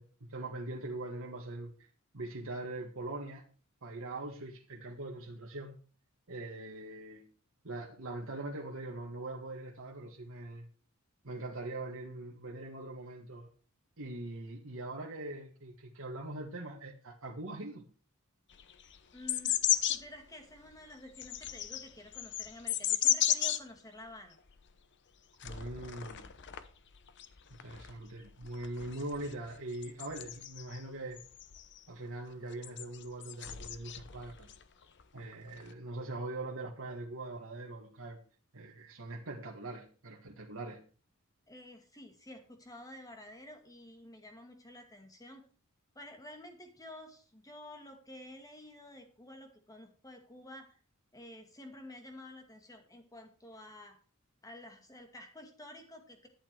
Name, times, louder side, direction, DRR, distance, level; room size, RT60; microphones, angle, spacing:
voice 1, 0.0-1.7 2.1-3.4 3.8-5.8 6.3-7.2 7.6-10.7 11.2-13.5 14.0-17.8 25.4-26.2 27.5-31.2 31.9-34.5 35.1-38.2 38.5-40.8, right 2 dB, 65° right, 1.9 m, -42 dB
sound 1, 18.5-20.1 20.7-23.6 24.1-24.2 24.5-24.7 25.4-26.7 26.9-30.8 31.2-31.8 32.5-34.6 35.0-35.7, left 11 dB, 55° left, 0.8 m, -34 dB
voice 2, 19.1-19.5 19.8-24.3 41.5-45.4 45.9-50.8 51.1-54.0 54.4-56.3, left 1 dB, 15° left, 2.2 m, -50 dB
11.5 x 8.7 x 4.6 m
head